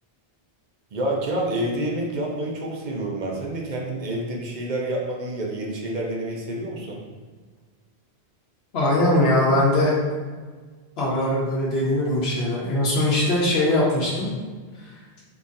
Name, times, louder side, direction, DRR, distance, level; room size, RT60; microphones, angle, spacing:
voice 1, 0.9-7.0, right 1 dB, 50° right, -1 dB, 0.7 m, -28 dB
voice 2, 8.7-9.9 11.0-14.3, left 1 dB, 75° left, -5 dB, 1.0 m, -21 dB
3.7 x 2.9 x 2.5 m, 1.4 s
omnidirectional pair, 1.1 m